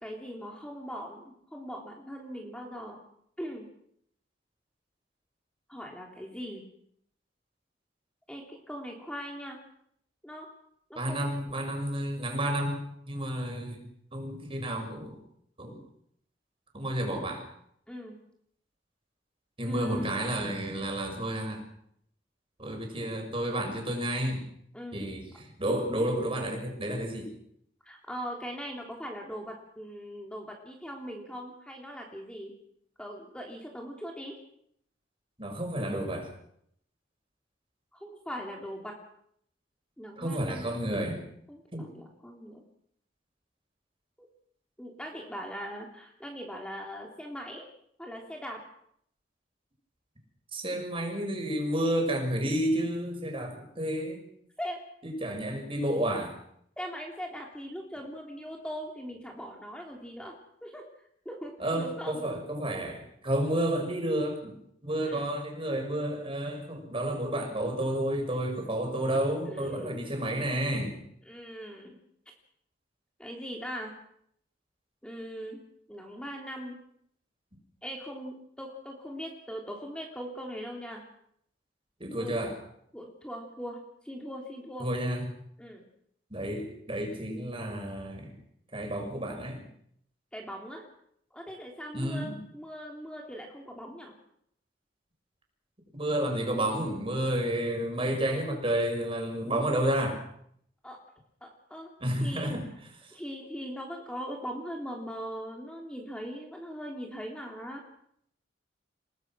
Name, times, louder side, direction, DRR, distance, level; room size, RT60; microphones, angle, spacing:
voice 1, 0.0-3.0 3.4-3.7 5.7-6.6 8.3-9.6 10.2-10.5 10.9-11.3 17.9-18.1 19.6-20.4 24.7-25.1 27.8-32.5 33.0-34.3 37.9-38.9 40.0-40.7 41.5-42.6 44.2-44.3 44.8-47.7 48.0-48.6 54.6-54.8 56.8-60.3 60.6-60.9 61.2-61.5 61.8-62.2 65.0-65.3 69.4-69.9 71.2-72.0 73.2-73.9 75.0-75.6 75.9-76.8 77.8-81.0 82.1-82.3 82.9-84.9 85.6-85.8 90.3-90.8 91.3-94.1 100.8-101.0 101.4-101.9 102.2-102.5 103.1-107.8, equal, 5° left, 0 dB, 3.3 m, -40 dB
voice 2, 11.0-13.8 14.1-15.2 15.6-15.8 16.7-17.4 19.6-21.6 22.6-24.5 24.9-27.3 35.4-36.3 40.2-41.2 41.7-41.8 50.5-54.2 55.0-56.4 61.6-64.5 64.8-71.0 82.0-82.5 84.8-85.3 86.3-88.4 88.7-89.6 91.9-92.4 95.9-100.2 102.0-102.6, right 1 dB, 30° right, 3 dB, 6.8 m, -31 dB
29.5 x 19.5 x 6.3 m, 0.71 s
head